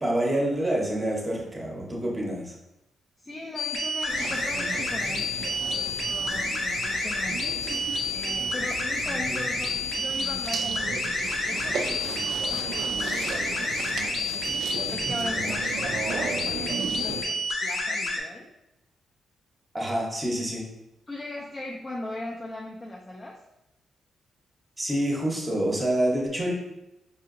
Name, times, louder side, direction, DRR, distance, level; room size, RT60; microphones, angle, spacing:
voice 1, 0.0-2.5 9.3-9.4 19.7-20.7 24.8-26.5, right 1 dB, 15° right, -2 dB, 0.7 m, -27 dB
voice 2, 3.2-5.3 6.0-7.5 8.1-14.6 14.9-18.5 21.1-23.4, left 2 dB, 15° left, -2 dB, 0.3 m, -39 dB
sound 1, 3.6-18.2, left 1 dB, 65° left, 0.6 m, -29 dB
sound 2, 4.1-17.2, right 5 dB, 70° right, 0.3 m, -36 dB
5.0 x 2.7 x 2.5 m, 0.92 s
wide cardioid pair, 165°, 0 cm